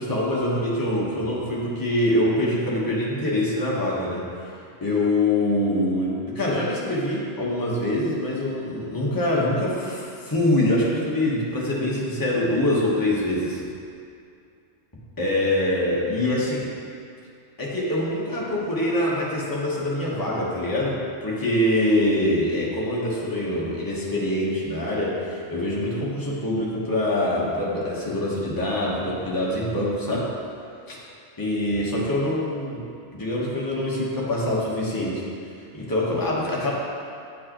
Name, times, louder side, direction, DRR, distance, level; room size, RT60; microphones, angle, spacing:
voice 1, 0.0-4.2 4.8-13.6 15.2-16.7 17.6-30.3 30.9-31.0 31.4-32.8 33.1-35.2 35.7-36.7, left 1 dB, 20° left, -6 dB, 1.1 m, -24 dB
9.3 x 4.6 x 3.0 m, 2.4 s
omnidirectional pair, 1.3 m